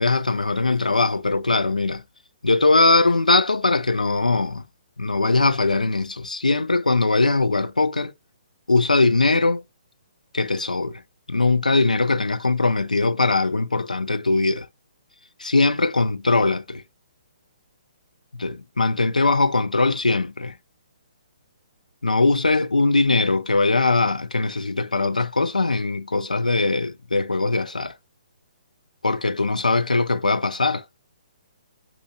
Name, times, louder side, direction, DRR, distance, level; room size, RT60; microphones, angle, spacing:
voice 1, 0.0-2.0 2.4-4.6 5.0-8.1 8.7-9.6 10.3-11.0 11.3-14.7 15.4-16.8 18.3-20.5 22.0-27.9 29.0-30.8, left 3 dB, 80° left, 0.4 m, -21 dB
4.2 x 2.5 x 2.4 m
figure-of-eight pair, 130°, 4 cm